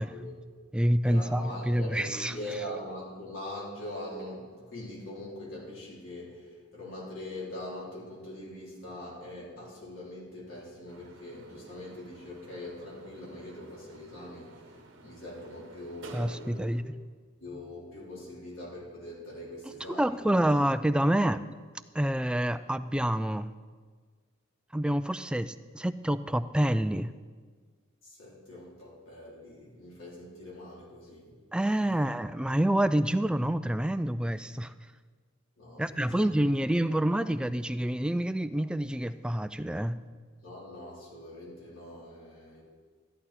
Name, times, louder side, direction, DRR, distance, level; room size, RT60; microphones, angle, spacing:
voice 1, 0.0-0.6 1.0-17.1 17.4-20.4 28.0-31.4 31.8-31.9 35.6-36.5 40.4-42.6, left 1 dB, 70° left, -5 dB, 3.6 m, -42 dB
voice 2, 0.7-2.3 16.1-16.9 19.9-21.4 21.9-23.5 24.7-27.1 31.5-34.7 35.8-40.0, right 1 dB, 5° right, 12 dB, 0.3 m, -27 dB
sound 1, 10.9-16.8, right 2 dB, 65° right, 1.1 m, -52 dB
13.5 x 11.0 x 4.3 m, 1.5 s
head